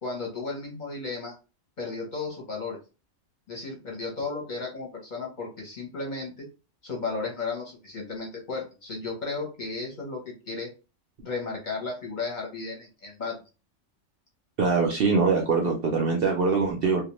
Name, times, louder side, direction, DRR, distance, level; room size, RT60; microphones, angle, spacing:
voice 1, 0.0-1.3 1.8-2.8 3.5-6.5 6.8-10.7 11.2-13.4, left 4 dB, 45° left, -2 dB, 0.8 m, -34 dB
voice 2, 14.6-17.0, right 4 dB, 60° right, 1 dB, 0.6 m, -23 dB
2.2 x 2.2 x 2.9 m, 0.31 s
omnidirectional pair, 1.3 m